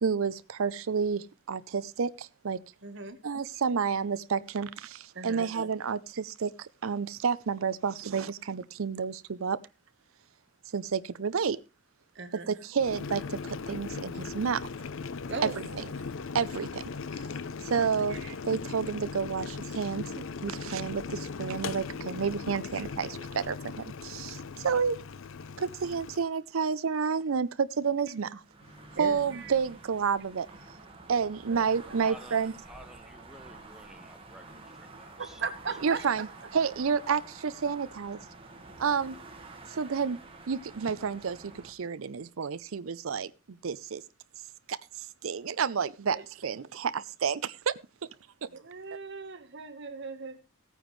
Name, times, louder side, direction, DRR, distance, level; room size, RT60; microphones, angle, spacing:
voice 1, 0.0-2.6 3.2-9.6 10.7-11.6 12.3-14.6 15.4-15.7 16.3-16.8 17.6-18.2 18.4-20.1 20.4-25.0 25.6-28.4 29.0-30.5 31.1-32.5 35.8-36.3 36.5-38.2 38.8-39.2 39.7-40.2 40.5-44.0 44.7-46.2 46.4-47.7 48.4-48.5, right 6 dB, 70° right, 0.5 m, -30 dB
voice 2, 2.8-3.2 5.1-5.4 12.1-12.5 15.3-15.9 18.1-18.3 28.9-29.5 31.5-32.1 35.2-36.2 38.6-38.8 46.1-46.2 48.5-50.4, right 4 dB, 55° right, 1.3 m, -39 dB
Boiling, 12.8-26.3, left 5 dB, 65° left, 0.5 m, -38 dB
sound 1, 25.6-25.8 28.2-30.0 30.5-33.8, left 1 dB, 85° left, 5.8 m, -59 dB
sound 2, 28.4-41.7, right 3 dB, 25° right, 1.5 m, -49 dB
voice 3, 32.0-35.4, equal, ahead, 1.0 m, -51 dB
16.5 x 9.1 x 3.2 m
head